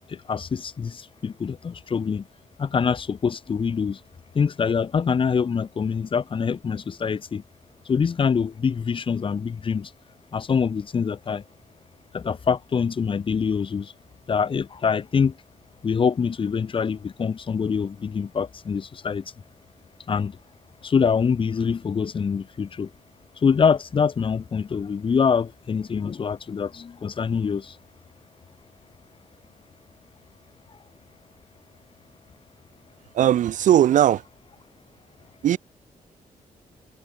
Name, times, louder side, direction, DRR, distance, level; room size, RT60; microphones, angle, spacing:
voice 1, 0.1-2.3 2.6-4.0 4.3-7.4 7.9-9.9 10.3-11.4 12.1-13.9 14.3-15.3 15.8-19.2 20.1-20.4 20.8-22.9 23.4-27.8, left 6 dB, 35° left, 1.0 m, -24 dB
voice 2, 33.1-34.2 35.4-35.6, right 11 dB, 60° right, 0.4 m, -18 dB
cardioid pair, 130°, 14 cm